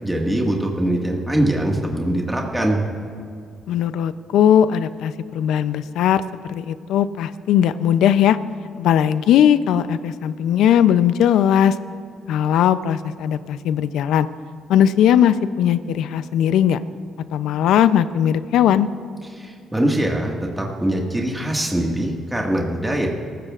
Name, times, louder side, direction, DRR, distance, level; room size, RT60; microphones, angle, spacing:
voice 1, 0.0-2.8 19.3-23.1, right 1 dB, 10° right, -1 dB, 1.8 m, -22 dB
voice 2, 3.7-6.2 6.5-8.4 8.8-11.8 12.3-14.3 14.7-16.8 17.3-18.9, left 9 dB, 85° left, 13 dB, 0.5 m, -18 dB
23.5 x 13.5 x 2.5 m, 2.4 s
cardioid pair, 90°, 0 cm